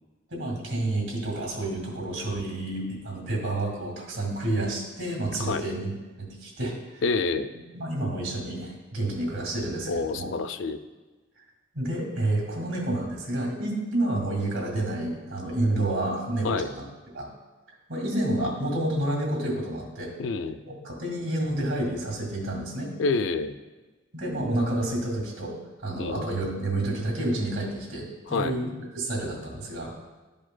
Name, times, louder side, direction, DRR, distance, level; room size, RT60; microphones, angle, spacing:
voice 1, 0.3-7.0 7.5-10.3 11.7-16.8 17.1-17.3 17.9-20.1 20.7-22.9 24.1-25.5 25.8-29.9, right 1 dB, 80° right, 0 dB, 2.0 m, -29 dB
voice 2, 7.0-7.5 9.9-10.8 16.4-16.7 20.2-20.6 23.0-23.6 26.0-26.3 28.3-28.6, left 4 dB, 70° left, 10 dB, 0.4 m, -27 dB
11.5 x 5.1 x 2.2 m, 1.2 s
head